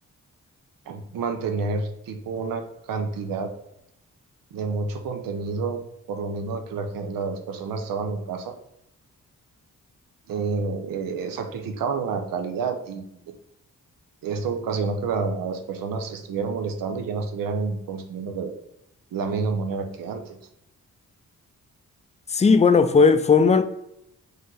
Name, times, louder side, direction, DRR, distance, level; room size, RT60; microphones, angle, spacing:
voice 1, 0.9-2.6 2.9-3.5 4.5-5.8 6.1-8.5 10.3-13.0 14.2-18.5 19.1-20.4, right 4 dB, 90° right, 0.6 m, -29 dB
voice 2, 22.3-23.6, left 5 dB, 20° left, 0.3 m, -16 dB
5.2 x 2.0 x 3.7 m
cardioid pair, 70°, 33 cm